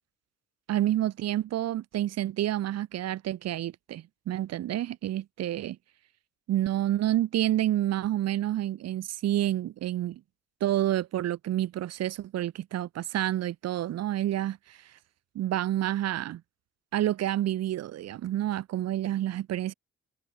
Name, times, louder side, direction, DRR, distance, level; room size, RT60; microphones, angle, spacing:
voice 1, 0.7-5.8 6.5-10.2 10.6-14.8 15.3-16.4 16.9-19.7, right 13 dB, 60° right, 0.7 m, -29 dB
cardioid pair, 90°, 30 cm